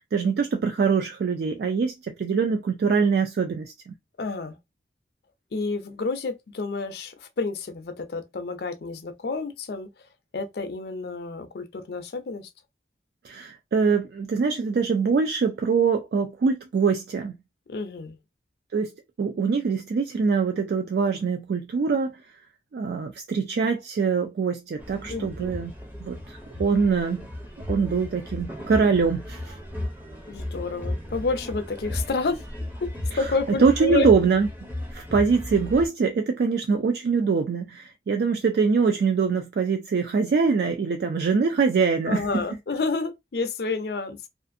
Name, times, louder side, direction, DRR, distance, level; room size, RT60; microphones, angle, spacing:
voice 1, 0.1-3.9 13.2-17.4 18.7-18.9 19.2-22.2 22.7-25.7 26.0-27.3 27.7-29.6 33.1-33.2 33.6-34.5 34.9-42.2, right 5 dB, 60° right, 0.3 m, -23 dB
voice 2, 4.2-4.6 5.5-9.9 10.3-12.5 17.7-18.2 25.1-25.5 30.3-32.4 32.8-34.1 42.1-44.3, left 3 dB, 60° left, 0.4 m, -29 dB
sound 1, 24.8-35.9, left 1 dB, 10° right, 0.5 m, -35 dB
2.5 x 2.5 x 2.5 m
head